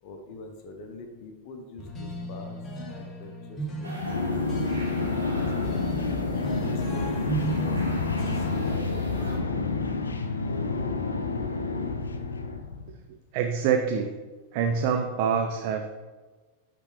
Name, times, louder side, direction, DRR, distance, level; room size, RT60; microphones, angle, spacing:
voice 1, 0.0-2.6 2.9-5.3 5.7-6.1 6.7-7.8 8.0-9.7, left 2 dB, 45° left, 4 dB, 0.8 m, -45 dB
sound 1, 1.8-8.7, right 1 dB, 20° left, 1.1 m, -36 dB
sound 2, 3.8-9.4, right 1 dB, 85° right, 1.8 m, -44 dB
sound 3, 4.0-12.9, left 3 dB, 75° left, 0.5 m, -29 dB
voice 2, 13.3-14.1 14.5-16.0, right 7 dB, 45° right, 5 dB, 0.4 m, -26 dB
9.8 x 3.4 x 3.3 m, 1.3 s
figure-of-eight pair, 90°, 0 cm